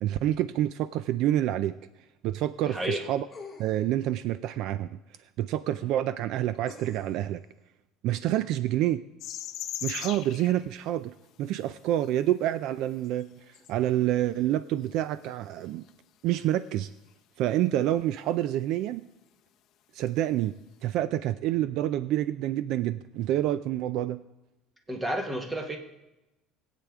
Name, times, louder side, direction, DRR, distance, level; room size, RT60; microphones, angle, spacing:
voice 1, 0.0-1.7 2.2-3.3 3.6-4.9 5.4-7.4 8.0-9.0 9.8-15.8 16.2-16.9 17.4-19.0 19.9-20.6 20.8-24.2, right 13 dB, 55° right, 14 dB, 0.4 m, -28 dB
voice 2, 2.6-3.0 24.9-25.8, right 1 dB, 10° right, 4 dB, 1.3 m, -31 dB
sound 1, 3.3-4.0 6.7-7.3 8.2-8.3, left 4 dB, 10° left, 2.3 m, -47 dB
sound 2, 9.2-10.6 12.0-12.1 13.0-13.2 13.5-13.7 15.3-15.4 15.9-16.0 17.4-17.6 20.1-20.2, left 11 dB, 50° left, 0.6 m, -38 dB
20.5 x 8.4 x 3.6 m, 0.99 s
cardioid pair, 160°, 0 cm